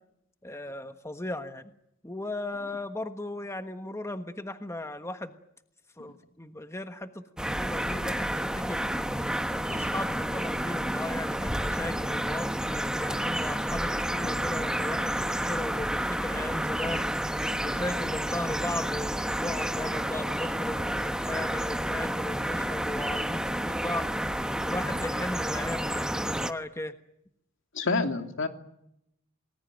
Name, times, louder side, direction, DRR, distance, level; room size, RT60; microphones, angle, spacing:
voice 1, 0.4-1.7 2.0-5.3 6.0-7.2 7.6-8.9 9.5-17.1 17.6-24.1 24.7-26.9, left 1 dB, 15° left, 8 dB, 1.3 m, -36 dB
sound 1, 7.4-26.5, right 1 dB, 5° right, 1.1 m, -30 dB
voice 2, 27.7-28.5, left 3 dB, 65° left, 6 dB, 2.9 m, -28 dB
29.0 x 20.0 x 9.1 m, 0.78 s
head